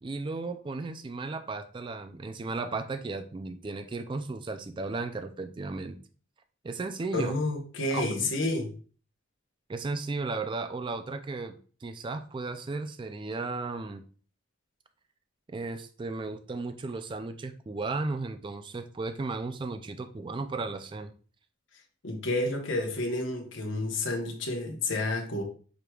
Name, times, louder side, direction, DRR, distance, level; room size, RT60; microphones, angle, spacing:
voice 1, 0.0-6.0 6.6-7.3 7.9-8.3 9.7-14.0 15.5-21.1, right 3 dB, 25° right, 9 dB, 0.3 m, -35 dB
voice 2, 7.1-8.7 22.0-25.4, left 2 dB, 65° left, 1 dB, 1.0 m, -30 dB
5.0 x 4.6 x 2.3 m, 0.40 s
head